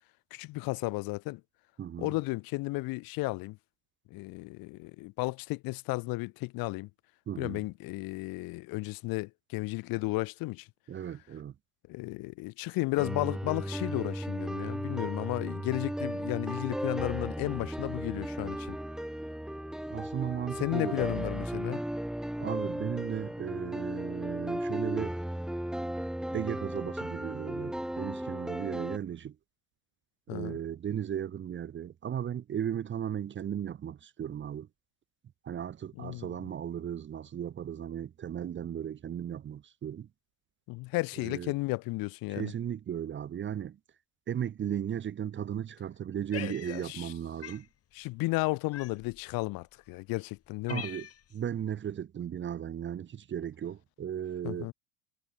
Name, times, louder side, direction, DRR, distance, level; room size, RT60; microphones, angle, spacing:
voice 1, 0.3-1.4 2.0-3.6 4.1-6.9 7.4-10.7 11.9-18.8 20.6-21.8 30.3-30.6 36.0-36.3 40.7-42.5 46.3-47.1 47.9-50.8 54.4-54.7, left 22 dB, 60° left, 3.2 m, -34 dB
voice 2, 1.8-2.1 7.3-7.6 10.9-11.5 19.9-21.3 22.4-25.2 26.3-29.4 30.3-34.7 35.4-40.1 41.2-41.5 42.3-43.8 44.3-47.7 50.7-54.7, right 9 dB, 30° right, 1.2 m, -36 dB
sound 1, 13.0-29.0, equal, ahead, 1.1 m, -35 dB
Cat, 46.3-47.1 47.4-47.7 48.7-49.2 49.9-50.0 50.4-51.4, left 10 dB, 35° left, 5.2 m, -44 dB
supercardioid pair, 105°, 40 cm